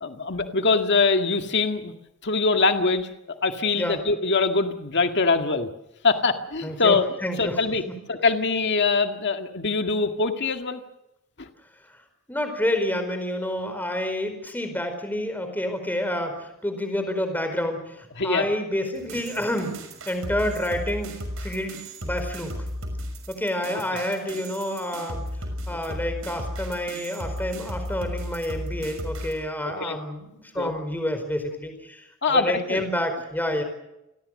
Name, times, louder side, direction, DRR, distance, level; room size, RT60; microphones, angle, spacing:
voice 1, 0.0-1.9 2.2-3.1 3.4-5.7 6.0-7.0 7.4-7.8 8.1-10.8 11.4-11.5 18.2-18.4 29.8-30.0 30.6-30.8 32.2-32.8, left 4 dB, 55° left, 6 dB, 2.0 m, -23 dB
voice 2, 6.6-7.6 7.9-8.0 12.3-19.8 20.1-21.7 22.0-22.7 23.3-25.3 25.7-33.6, left 1 dB, 10° left, 7 dB, 4.6 m, -29 dB
sound 1, 19.0-29.3, equal, 70° right, 6.3 m, -35 dB
29.0 x 20.5 x 6.6 m, 0.90 s
head